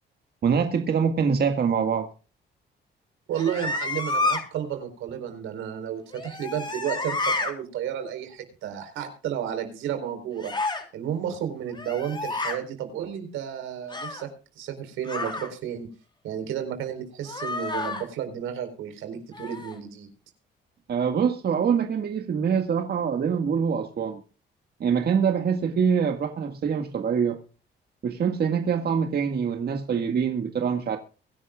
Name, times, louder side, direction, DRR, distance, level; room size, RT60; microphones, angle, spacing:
voice 1, 0.4-2.1 20.9-24.2 24.8-27.4 28.0-31.0, right 6 dB, 55° right, 1.9 m, -24 dB
sound 1, 3.3-4.4 6.1-7.5 10.4-10.8 11.7-12.6 13.9-14.3 15.0-15.5 17.3-18.0 19.3-19.8, left 3 dB, 25° left, 3.8 m, -29 dB
voice 2, 3.3-10.5 10.9-14.3 14.6-15.9 16.2-20.1, right 9 dB, 90° right, 4.4 m, -32 dB
24.0 x 11.0 x 2.4 m
cardioid pair, 90°, 20 cm